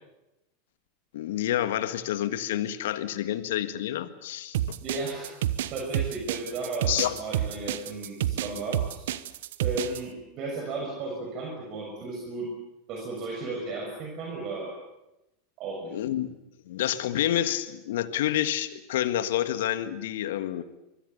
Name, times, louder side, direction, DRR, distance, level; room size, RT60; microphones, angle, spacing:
voice 1, 1.1-4.8 6.9-7.2 15.9-16.4 16.7-20.6, left 12 dB, 65° left, 11 dB, 1.7 m, -28 dB
sound 1, 4.5-10.0, right 12 dB, 65° right, 1.1 m, -29 dB
voice 2, 4.8-5.3 5.7-9.1 9.6-12.5 12.9-14.7 15.6-15.9, right 3 dB, 45° right, 0 dB, 6.3 m, -34 dB
24.5 x 24.0 x 7.1 m, 0.93 s
hypercardioid pair, 90°, 0 cm